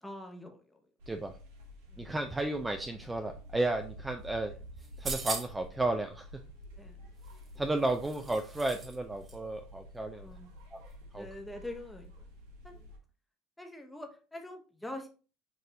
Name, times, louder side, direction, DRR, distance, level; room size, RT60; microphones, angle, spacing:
voice 1, 0.0-0.8 1.9-2.1 6.8-7.1 10.2-10.5 11.1-12.3 12.6-12.8 13.6-15.1, left 1 dB, 5° left, 4 dB, 0.9 m, -45 dB
sound 1, 1.0-13.0, equal, 80° right, 1.0 m, -50 dB
voice 2, 1.1-1.4 2.0-4.5 5.0-6.3 7.6-10.3 10.7-10.8 11.1-11.3, right 2 dB, 15° right, 6 dB, 0.4 m, -33 dB
sound 2, 4.8-5.7 7.2-9.0 9.2-9.4, right 3 dB, 30° right, 0.9 m, -40 dB
6.0 x 2.6 x 2.7 m, 0.37 s
supercardioid pair, 90°, 0 cm